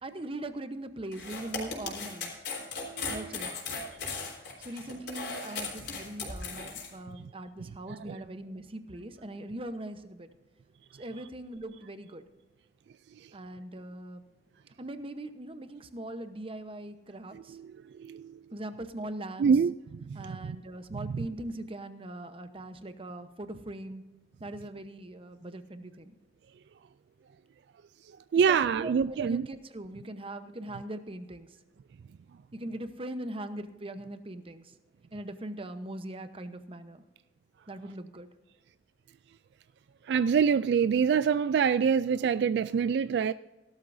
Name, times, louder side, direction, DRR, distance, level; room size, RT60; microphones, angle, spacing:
voice 1, 0.0-2.4 3.1-3.6 4.6-10.3 10.9-12.2 13.3-14.2 14.8-17.6 18.5-19.5 20.1-24.0 24.4-26.2 28.5-31.5 32.5-34.7 35.1-37.0 37.7-38.3, right 1 dB, 30° right, 0.9 m, -41 dB
sound 1, 1.1-6.9, left 4 dB, 70° left, 4.0 m, -37 dB
voice 2, 2.9-3.3 5.5-5.6 7.9-8.2 17.3-17.7 18.0-18.3 19.4-19.7 20.1-20.6 21.0-21.3 28.3-29.5 40.1-43.3, right 6 dB, 65° right, 0.3 m, -26 dB
17.0 x 12.5 x 2.7 m
head